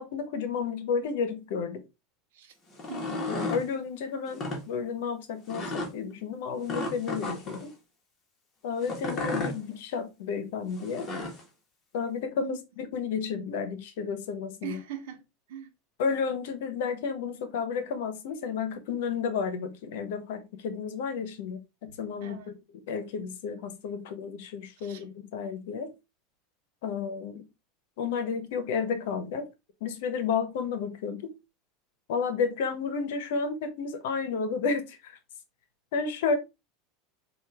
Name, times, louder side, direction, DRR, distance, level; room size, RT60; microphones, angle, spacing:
voice 1, 0.0-1.8 3.3-7.7 8.6-11.1 11.9-14.8 16.0-22.5 22.9-25.9 26.8-27.4 28.0-29.5 29.8-31.3 32.1-35.2 35.9-36.4, left 5 dB, 75° left, 1.0 m, -32 dB
sound 1, 2.7-3.6 4.3-4.6 5.5-5.9 6.7-7.6 8.8-9.6 10.8-11.4, left 2 dB, 30° left, 1.6 m, -33 dB
voice 2, 2.9-3.3 12.4-12.6 14.6-15.2 15.5-15.7 22.2-22.6 24.8-25.1, right 8 dB, 80° right, 1.0 m, -40 dB
4.8 x 2.6 x 3.4 m
supercardioid pair, 125°, 0 cm